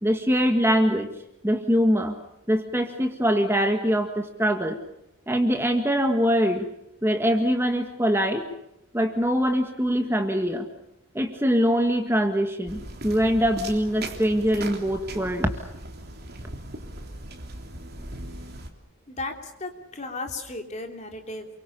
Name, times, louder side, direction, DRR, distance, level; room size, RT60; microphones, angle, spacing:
voice 1, 0.0-1.1 1.4-2.2 2.5-4.8 5.3-6.7 7.0-8.4 8.9-10.7 11.1-15.6, equal, 10° right, 5 dB, 1.7 m, -23 dB
sound 1, 12.7-18.7, right 2 dB, 45° right, 3.3 m, -39 dB
voice 2, 19.6-21.5, left 2 dB, 35° left, 3 dB, 3.2 m, -34 dB
28.5 x 24.0 x 6.9 m, 0.82 s
head